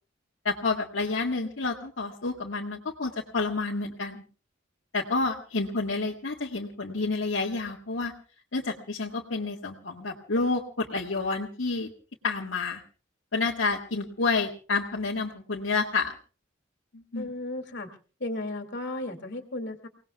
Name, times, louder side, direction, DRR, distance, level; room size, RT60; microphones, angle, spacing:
voice 1, 0.4-4.2 4.9-8.1 8.5-11.9 12.2-12.8 13.3-16.1 16.9-17.3, left 3 dB, 80° left, -2 dB, 1.7 m, -29 dB
voice 2, 17.1-17.9 18.2-19.9, left 2 dB, 60° left, 5 dB, 2.3 m, -34 dB
29.5 x 18.5 x 2.3 m, 0.38 s
head